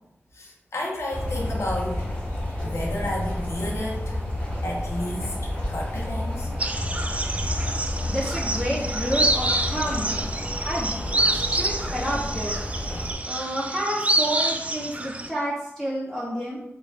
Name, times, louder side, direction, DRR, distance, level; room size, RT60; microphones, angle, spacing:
voice 1, 0.3-2.1 2.6-4.2 4.6-6.5 7.5-7.7, left 1 dB, 70° left, -2 dB, 0.8 m, -32 dB
sound 1, 1.1-13.1, left 1 dB, 30° left, 1.3 m, -30 dB
sound 2, 6.6-15.3, right 2 dB, 30° right, 0.4 m, -27 dB
voice 2, 8.1-10.2 10.6-11.0 11.3-12.6 13.2-16.6, equal, 5° left, -5 dB, 0.7 m, -30 dB
4.8 x 2.3 x 3.6 m, 0.89 s
wide cardioid pair, 90°, 5 cm